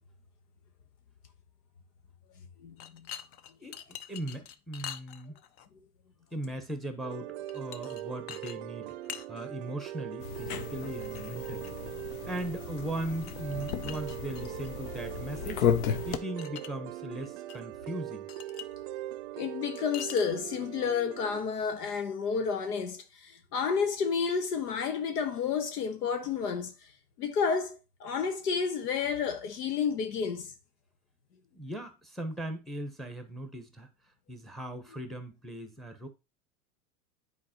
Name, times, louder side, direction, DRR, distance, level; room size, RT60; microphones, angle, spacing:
voice 1, 2.6-3.1 19.3-26.7 27.2-30.5, left 6 dB, 85° left, 1.2 m, -31 dB
sound 1, 2.8-5.7 7.5-8.0 8.3-8.6 8.8-9.3 11.0-11.8 13.2-14.7 16.1-16.7 17.0-17.6 17.9-18.0 18.3-18.7 19.9-20.5, left 10 dB, 30° left, 0.4 m, -44 dB
voice 2, 3.6-5.4 6.3-8.9 9.3-11.8 12.2-15.7 16.0-18.3 31.5-33.9 34.3-36.1, right 1 dB, ahead, 1.0 m, -38 dB
sound 2, 7.0-21.4, right 14 dB, 50° right, 0.6 m, -41 dB
sound 3, 10.2-16.2, left 8 dB, 65° left, 0.9 m, -34 dB
9.6 x 4.4 x 3.0 m
hypercardioid pair, 115°, 46 cm